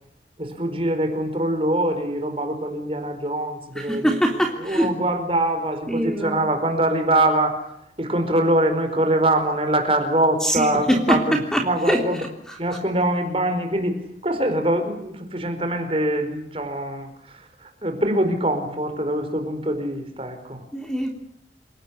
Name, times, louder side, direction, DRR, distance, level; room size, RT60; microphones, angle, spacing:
voice 1, 0.4-7.6 8.0-12.2 12.6-14.0 14.2-20.6, right 1 dB, 30° right, 7 dB, 4.8 m, -23 dB
voice 2, 3.8-4.9 5.9-6.4 10.4-11.2 11.5-11.6 11.9-12.0 12.5-12.6 20.7-21.1, equal, 5° left, 3 dB, 3.3 m, -22 dB
29.5 x 18.5 x 8.4 m, 0.74 s
head